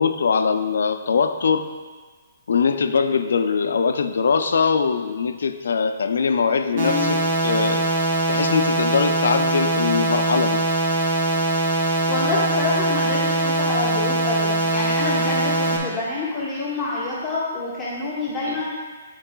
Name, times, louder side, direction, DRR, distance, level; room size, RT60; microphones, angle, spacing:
voice 1, 0.0-1.7 2.5-7.9 8.3-10.6 18.5-18.6, left 5 dB, 80° left, 8 dB, 0.5 m, -22 dB
voice 2, 6.7-7.1 12.1-18.6, left 3 dB, 10° left, -10 dB, 1.5 m, -27 dB
sound 1, 6.8-15.8, right 2 dB, 50° right, 1.3 m, -22 dB
13.0 x 4.7 x 2.3 m, 1.5 s
hypercardioid pair, 155°, 0 cm